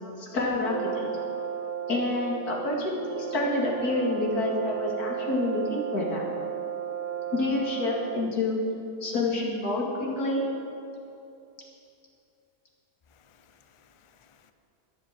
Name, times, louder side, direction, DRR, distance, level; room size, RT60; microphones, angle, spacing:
voice 1, 0.2-1.1 1.9-6.2 7.3-8.6 9.0-10.4, left 2 dB, 75° left, -3 dB, 2.9 m, -28 dB
Brass instrument, 0.6-8.4, right 9 dB, 65° right, 0.8 m, -34 dB
voice 2, 13.1-14.5, left 6 dB, 45° left, 8 dB, 0.4 m, -61 dB
12.5 x 9.9 x 7.5 m, 2.7 s
omnidirectional pair, 1.6 m